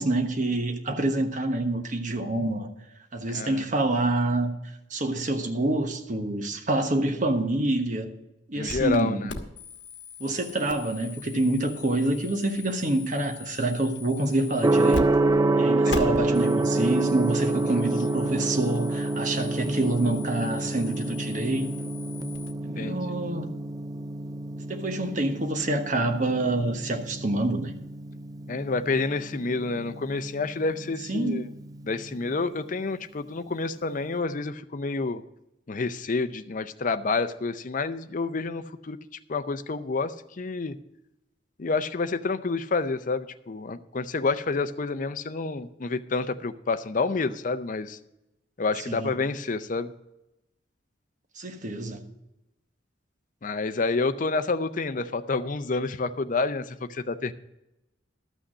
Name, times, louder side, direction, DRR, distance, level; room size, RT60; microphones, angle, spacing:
voice 1, 0.0-2.7 3.1-4.5 4.9-8.1 8.5-9.2 10.2-15.1 15.6-21.9 22.6-23.5 24.7-27.7 31.1-31.5 48.9-49.1 51.4-52.1, right 2 dB, 45° right, 1.2 m, -27 dB
voice 2, 3.3-3.6 8.5-9.3 15.9-16.0 17.7-17.8 22.8-23.0 28.5-31.4 31.8-35.2 35.7-39.0 39.3-40.8 41.6-48.0 48.6-49.9 53.4-57.3, left 3 dB, 45° left, 0.6 m, -29 dB
sound 1, 8.7-9.0 9.3-15.0 15.3-15.4 15.9-22.5, left 3 dB, 65° left, 1.2 m, -40 dB
Gong, 14.6-32.5, right 2 dB, 20° right, 0.4 m, -28 dB
12.5 x 6.3 x 6.4 m
head